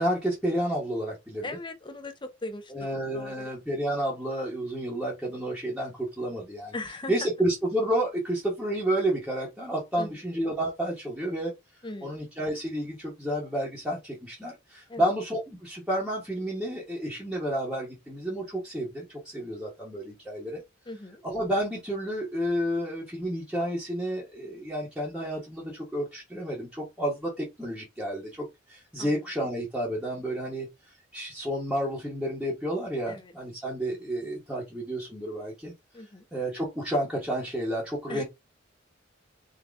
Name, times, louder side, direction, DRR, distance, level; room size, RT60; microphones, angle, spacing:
voice 1, 0.0-1.5 2.7-6.7 7.1-11.5 12.0-20.6 21.2-30.7 31.1-35.7 36.3-38.2, right 1 dB, 5° right, 1.1 m, -30 dB
voice 2, 1.4-3.5 6.7-7.1 10.0-10.1 11.8-12.2 14.9-15.1 20.9-21.2 29.0-29.2 33.1-33.3 35.9-36.3 38.1-38.2, left 2 dB, 25° left, 0.7 m, -39 dB
3.8 x 2.8 x 3.4 m
head